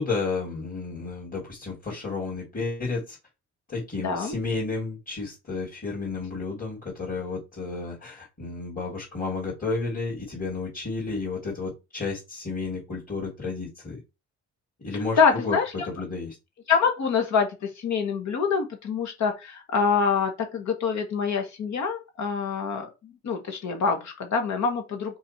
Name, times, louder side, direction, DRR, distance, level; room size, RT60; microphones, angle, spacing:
voice 1, 0.0-3.2 3.7-14.0 14.8-16.3, left 3 dB, 30° left, 3.0 m, -32 dB
voice 2, 4.0-4.3 15.1-15.7 16.7-25.2, left 5 dB, 65° left, 1.6 m, -25 dB
4.7 x 4.4 x 4.6 m
cardioid pair, 90°, 30 cm